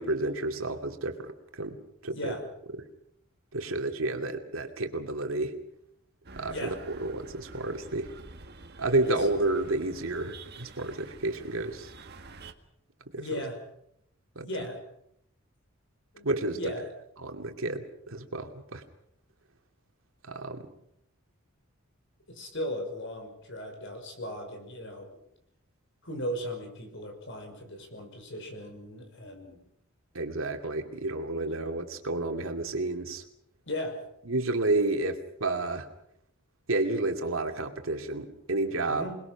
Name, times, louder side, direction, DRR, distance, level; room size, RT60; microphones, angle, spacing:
voice 1, 0.0-1.8 2.0-2.3 2.8-2.9 3.5-5.5 6.4-8.1 8.8-11.9 13.1-13.4 14.4-14.5 16.2-16.6 17.2-18.8 20.2-20.7 30.1-33.2 34.3-35.9 36.7-39.1, right 2 dB, 80° right, 5 dB, 2.5 m, -30 dB
sound 1, 6.2-12.5, right 3 dB, 55° right, 1.8 m, -48 dB
voice 2, 13.2-13.6 14.4-14.8 16.1-16.9 22.3-25.2 26.0-29.6 31.5-31.7 33.7-34.0 38.9-39.1, equal, 65° left, 5 dB, 5.7 m, -37 dB
28.0 x 20.5 x 6.0 m, 0.74 s
head